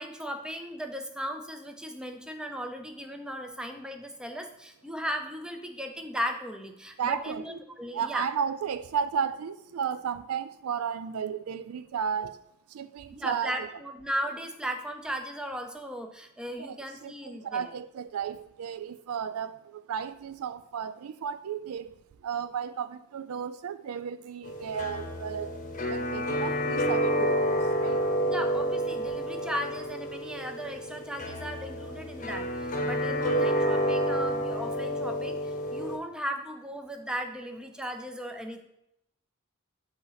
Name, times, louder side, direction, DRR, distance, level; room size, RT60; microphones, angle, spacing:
voice 1, 0.0-8.3 13.1-17.7 28.2-38.6, equal, 5° right, 0.6 m, -36 dB
voice 2, 7.0-7.6 7.9-12.4 12.7-13.7 16.6-28.1, right 7 dB, 85° right, 0.4 m, -34 dB
sound 1, 24.4-36.0, equal, 35° left, 0.9 m, -29 dB
7.6 x 2.9 x 5.7 m
head